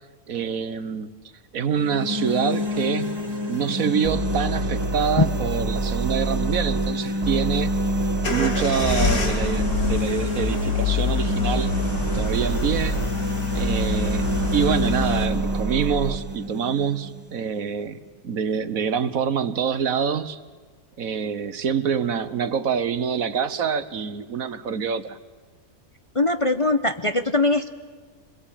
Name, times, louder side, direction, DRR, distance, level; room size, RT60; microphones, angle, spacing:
voice 1, 0.3-1.1 1.5-3.2 3.5-7.7 8.3-11.7 12.1-13.0 13.5-14.2 14.5-18.0 18.2-20.4 21.0-25.2, right 7 dB, 70° right, 12 dB, 1.5 m, -26 dB
sound 1, 1.7-17.7, left 1 dB, 15° right, 1.7 m, -29 dB
sound 2, 4.0-6.9 7.2-10.0 10.3-13.1 13.5-16.2, right 3 dB, 45° right, 1.9 m, -28 dB
sound 3, 8.2-15.3, left 5 dB, 75° left, 3.3 m, -27 dB
voice 2, 26.1-27.7, left 2 dB, 25° left, 7 dB, 0.9 m, -21 dB
27.0 x 21.5 x 9.0 m, 1.5 s
omnidirectional pair, 1.6 m